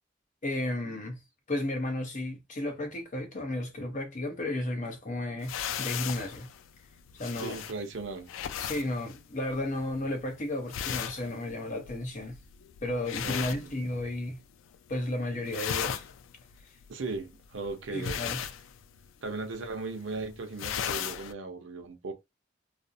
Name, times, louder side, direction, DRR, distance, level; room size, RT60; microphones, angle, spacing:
voice 1, 0.4-1.2 1.5-6.5 7.2-7.6 8.6-12.4 12.8-14.4 14.9-16.1 17.9-18.4, left 1 dB, 40° left, 0.7 m, -33 dB
sound 1, 5.4-14.4 14.7-15.1 15.4-21.3, left 9 dB, 90° left, 0.3 m, -37 dB
voice 2, 7.4-8.3 13.2-13.7 16.9-18.2 19.2-22.1, right 3 dB, 85° right, 0.7 m, -37 dB
2.5 x 2.0 x 2.6 m
head